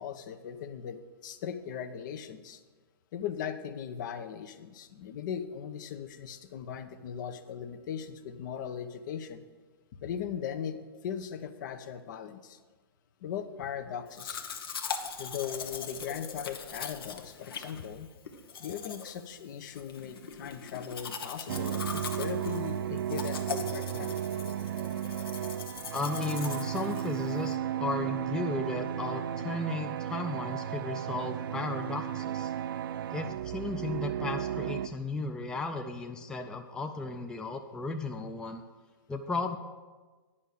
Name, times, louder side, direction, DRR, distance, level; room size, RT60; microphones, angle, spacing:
voice 1, 0.0-2.6 3.1-9.4 10.0-10.8 11.0-12.6 13.2-14.5 15.2-18.1 18.6-24.2, left 8 dB, 55° left, 10 dB, 0.8 m, -38 dB
Domestic sounds home sounds, 14.1-27.5, left 6 dB, 75° left, 1.0 m, -41 dB
sound 1, 21.5-34.9, right 10 dB, 65° right, 0.4 m, -34 dB
voice 2, 25.9-32.5 33.1-38.6 39.1-39.6, left 3 dB, 5° left, 5 dB, 0.5 m, -35 dB
10.0 x 5.6 x 6.5 m, 1.4 s
hypercardioid pair, 130°, 12 cm